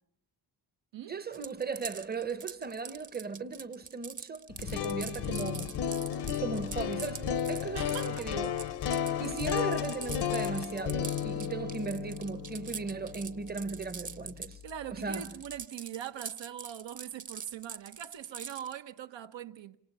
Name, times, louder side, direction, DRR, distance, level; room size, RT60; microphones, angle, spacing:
voice 1, 1.1-5.8 6.4-8.5 9.2-14.6 14.9-15.3, right 4 dB, 20° right, 0.9 m, -37 dB
sound 1, 1.3-14.7 15.0-18.7, right 6 dB, 40° right, 1.2 m, -43 dB
sound 2, 4.5-14.5, left 9 dB, 65° left, 0.9 m, -34 dB
voice 2, 7.7-8.3 14.6-19.8, right 10 dB, 75° right, 1.1 m, -42 dB
26.5 x 26.5 x 5.5 m
cardioid pair, 115°, 45 cm